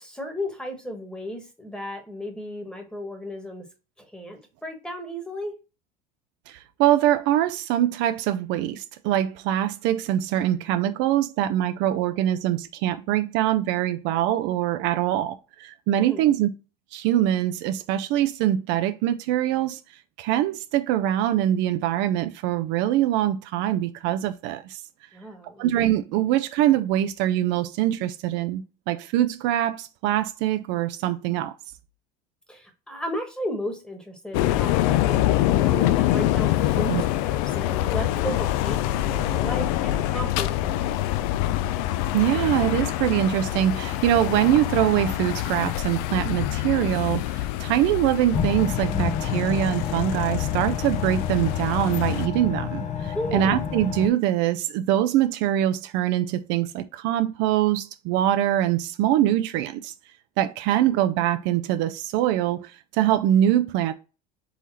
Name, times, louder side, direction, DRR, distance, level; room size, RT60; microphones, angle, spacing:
voice 1, 0.0-3.6 4.0-5.5 16.0-16.4 25.1-25.6 32.5-41.4 53.1-53.7 60.8-61.0, equal, 5° left, 1.3 m, -34 dB
voice 2, 6.5-16.5 16.9-19.8 20.2-24.8 25.6-31.5 36.9-37.0 42.1-59.9 60.4-63.9, right 12 dB, 65° right, 0.5 m, -23 dB
sound 1, 34.3-52.3, left 14 dB, 75° left, 0.4 m, -25 dB
sound 2, 48.3-54.1, left 7 dB, 40° left, 0.7 m, -30 dB
3.9 x 3.1 x 4.0 m
supercardioid pair, 110°, 20 cm